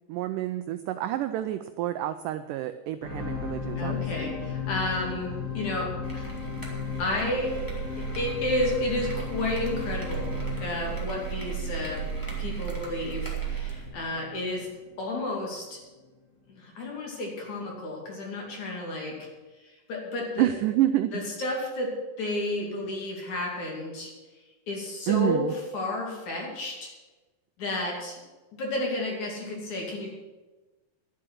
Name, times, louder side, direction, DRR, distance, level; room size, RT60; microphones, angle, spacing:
voice 1, 0.1-4.4 20.4-21.1 25.1-25.5, right 13 dB, 90° right, 10 dB, 1.8 m, -28 dB
sound 1, 3.0-15.4 16.0-16.1, left 5 dB, 30° left, 1.7 m, -36 dB
voice 2, 3.8-6.3 7.0-7.5 8.0-10.3 10.6-12.1 12.4-14.7 15.0-15.8 16.5-19.3 19.6-20.5 21.1-24.1 24.7-26.9 27.6-28.2 28.5-30.1, left 1 dB, 50° left, -1 dB, 3.9 m, -31 dB
sound 2, 6.0-13.9, right 7 dB, 5° left, 2.0 m, -35 dB
11.5 x 7.6 x 9.5 m, 1.2 s
omnidirectional pair, 4.4 m